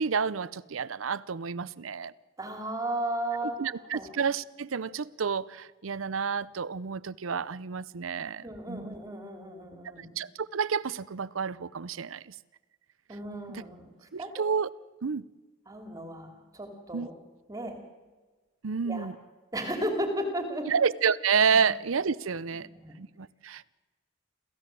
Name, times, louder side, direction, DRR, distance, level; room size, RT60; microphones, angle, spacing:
voice 1, 0.0-2.1 3.4-8.9 10.2-12.4 13.5-13.6 14.1-14.7 15.0-15.3 16.9-17.1 18.6-19.2 20.7-22.7 23.0-23.7, right 6 dB, 90° right, 0.6 m, -30 dB
voice 2, 2.4-3.6 3.9-4.1 8.4-10.1 13.1-14.4 15.7-17.1 17.5-17.8 18.8-19.1 19.5-20.7 21.5-21.6 22.7-23.0, right 1 dB, 20° right, 2.7 m, -34 dB
27.5 x 15.5 x 7.6 m
head